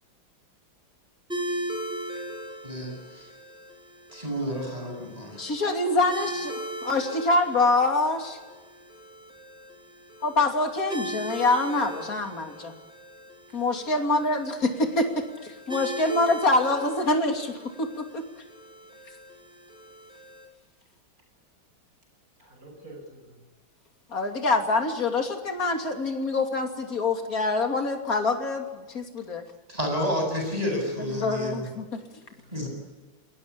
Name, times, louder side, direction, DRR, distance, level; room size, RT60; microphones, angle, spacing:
sound 1, 1.3-20.4, right 1 dB, ahead, 6.5 m, -39 dB
voice 1, 2.6-3.3 4.1-5.4 29.7-31.7 32.5-32.7, equal, 20° right, 2 dB, 8.3 m, -30 dB
voice 2, 5.4-8.4 10.2-12.7 13.5-18.2 24.1-29.4 31.1-32.0, left 2 dB, 45° left, 4 dB, 3.2 m, -25 dB
voice 3, 22.4-23.4 32.3-32.7, right 1 dB, 45° right, 3 dB, 8.0 m, -48 dB
28.5 x 21.0 x 8.5 m, 1.3 s
omnidirectional pair, 2.1 m